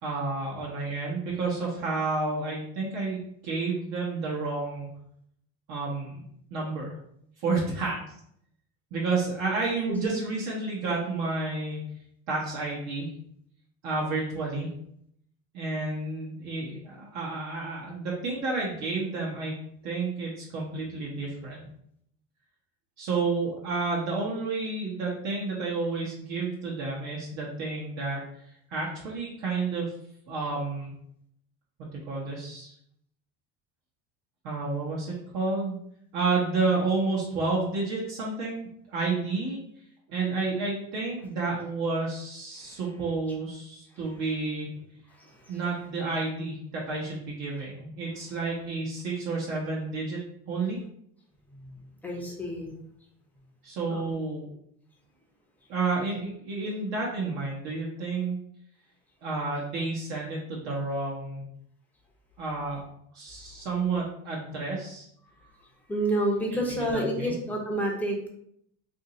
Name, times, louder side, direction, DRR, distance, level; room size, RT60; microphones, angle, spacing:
voice 1, 0.0-4.9 5.7-6.2 6.5-6.9 7.4-8.0 8.9-11.9 12.3-13.1 13.8-14.7 15.5-19.5 19.8-21.6 23.0-28.2 28.7-29.9 30.3-30.9 31.8-32.7 34.4-35.8 36.1-39.6 40.1-44.7 45.5-50.2 50.5-50.8 53.6-54.5 55.7-58.4 59.2-61.4 62.4-62.9 63.1-65.1 66.7-67.3, right 3 dB, 60° right, -4 dB, 1.0 m, -30 dB
voice 2, 9.9-10.2 45.2-45.3 51.5-51.7 52.0-52.7 53.9-54.1 65.9-68.3, right 1 dB, 5° left, -1 dB, 0.6 m, -29 dB
2.8 x 2.7 x 3.9 m, 0.71 s
cardioid pair, 145°, 30 cm